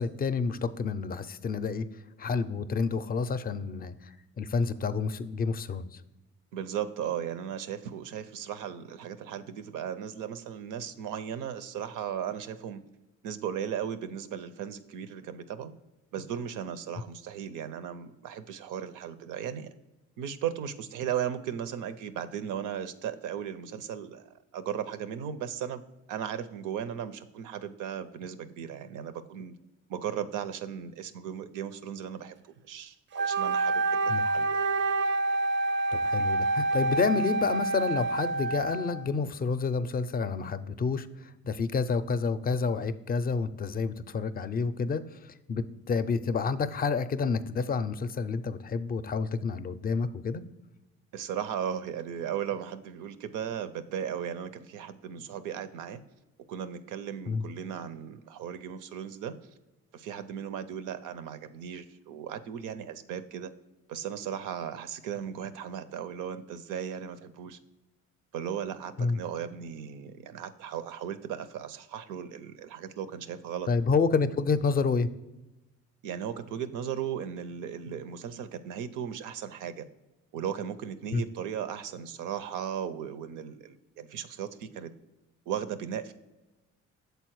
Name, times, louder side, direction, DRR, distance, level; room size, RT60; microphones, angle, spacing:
voice 1, 0.0-1.9 2.2-6.0 34.1-34.2 35.9-50.4 57.3-57.4 69.0-69.2 73.7-75.1 81.1-81.2, left 4 dB, 30° left, 13 dB, 0.4 m, -29 dB
voice 2, 6.5-12.8 13.2-15.7 16.1-19.7 20.2-25.8 26.1-29.5 29.9-34.6 51.1-56.0 56.5-59.3 59.9-63.5 63.9-67.6 68.3-73.7 76.0-79.9 80.3-84.9 85.5-86.1, right 9 dB, 90° right, 12 dB, 0.6 m, -36 dB
Wind instrument woodwind instrument, 33.1-39.0, right 2 dB, 40° right, 0.4 m, -27 dB
6.8 x 4.2 x 4.6 m, 1.0 s
cardioid pair, 90°, 30 cm